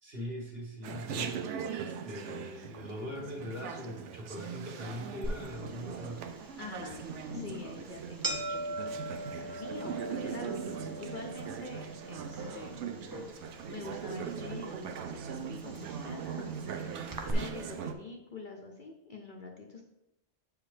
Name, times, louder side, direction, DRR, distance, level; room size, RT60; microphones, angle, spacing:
voice 1, 0.0-6.3, left 1 dB, 50° right, -3 dB, 1.7 m, -42 dB
Chatter, 0.8-17.9, right 7 dB, 75° right, 0.9 m, -40 dB
sound 1, 5.2-17.3, right 1 dB, 25° right, 0.4 m, -42 dB
voice 2, 6.6-12.8 13.7-19.8, left 3 dB, 50° left, 1 dB, 0.7 m, -46 dB
7.3 x 4.7 x 3.2 m, 0.90 s
omnidirectional pair, 1.3 m